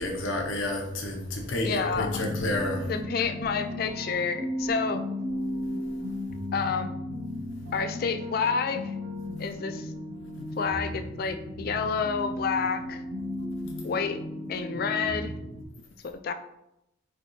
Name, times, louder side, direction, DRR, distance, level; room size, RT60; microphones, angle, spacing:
voice 1, 0.0-2.9, left 1 dB, 85° left, 2 dB, 0.8 m, -30 dB
voice 2, 1.6-2.1 2.9-5.0 6.5-6.9 7.7-8.9 9.4-9.9 10.6-13.0 13.8-14.2 14.5-15.3 16.0-16.3, left 5 dB, 50° left, 8 dB, 0.3 m, -29 dB
sound 1, 2.0-15.6, left 1 dB, 60° right, 0.7 m, -35 dB
3.7 x 3.4 x 2.7 m, 0.84 s
head